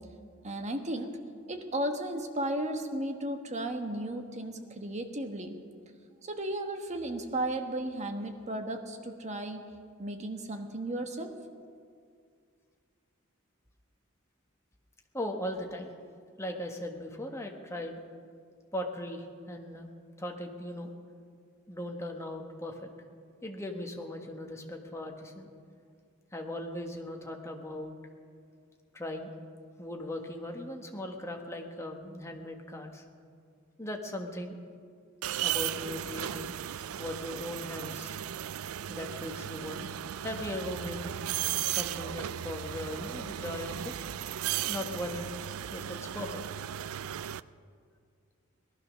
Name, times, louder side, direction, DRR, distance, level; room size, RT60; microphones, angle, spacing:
voice 1, 0.4-1.2 1.5-5.6 6.2-9.6 10.0-11.3, right 1 dB, 35° right, 5 dB, 1.2 m, -34 dB
voice 2, 15.1-15.9 16.4-18.0 18.7-19.9 20.2-20.9 21.7-22.9 23.4-25.5 26.3-27.9 28.9-29.3 29.8-33.0 33.8-34.6 35.4-36.6 37.0-38.2 38.9-39.9 40.2-41.1 41.8-43.9 44.7-45.3 45.7-46.4, left 1 dB, 15° left, 2 dB, 1.4 m, -38 dB
sound 1, 35.2-47.4, right 11 dB, 85° right, 0.4 m, -36 dB
19.0 x 12.0 x 6.2 m, 2.2 s
head